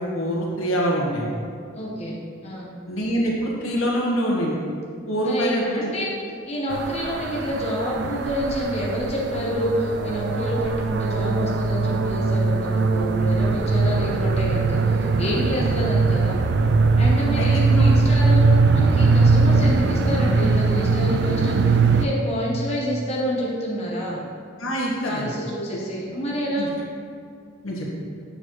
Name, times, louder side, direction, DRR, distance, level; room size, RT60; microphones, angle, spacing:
voice 1, 0.0-1.3 2.9-4.6 5.1-5.9 17.4-17.8 24.6-25.3 25.7-25.8 26.6-26.7 27.6-27.9, equal, 85° left, -4 dB, 1.5 m, -25 dB
voice 2, 1.7-2.2 2.4-2.7 5.2-6.1 6.5-16.4 17.0-18.4 18.7-24.2 25.0-26.7, equal, 30° left, -4 dB, 0.8 m, -28 dB
sound 1, 6.7-22.1, right 3 dB, 55° right, 0.3 m, -20 dB
6.8 x 6.7 x 3.0 m, 2.3 s
head